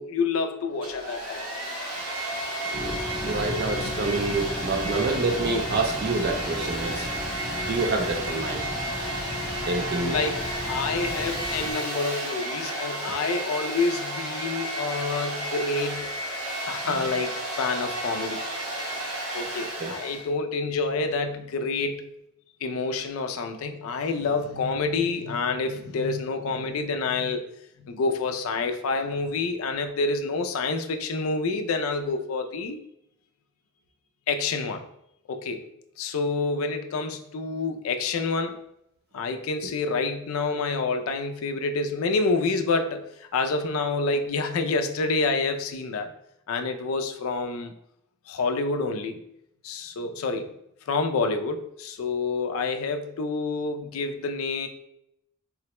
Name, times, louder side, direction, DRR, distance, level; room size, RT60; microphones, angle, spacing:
voice 1, 0.0-1.5 10.1-16.2 16.7-18.4 18.8-18.9 19.3-22.1 22.6-27.5 27.8-32.8 34.3-34.8 35.3-35.6 36.0-38.6 39.1-43.1 43.3-46.1 46.5-47.7 48.3-49.2 49.6-50.5 50.9-54.7, left 3 dB, 75° left, 0.4 m, -28 dB
Domestic sounds home sounds, 0.7-20.3, right 1 dB, 75° right, 1.0 m, -32 dB
sound 1, 2.7-11.7, left 1 dB, 5° left, 0.5 m, -35 dB
voice 2, 2.7-7.1 7.6-8.6 9.6-10.2 19.8-19.9, right 3 dB, 50° right, 0.4 m, -27 dB
3.8 x 2.1 x 2.9 m
head